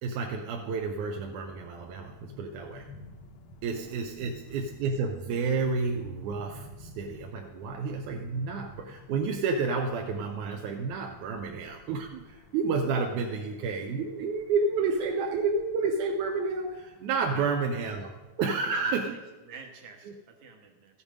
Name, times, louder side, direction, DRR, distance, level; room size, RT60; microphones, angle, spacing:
voice 1, 0.0-2.9 3.6-18.1 18.4-19.2 20.1-20.2, right 4 dB, 85° right, 3 dB, 2.1 m, -30 dB
sound 1, 0.5-18.3, left 2 dB, 70° left, 1.5 m, -52 dB
voice 2, 18.7-21.0, right 5 dB, 70° right, 3 dB, 2.6 m, -48 dB
14.0 x 7.1 x 5.1 m, 1.2 s
omnidirectional pair, 3.5 m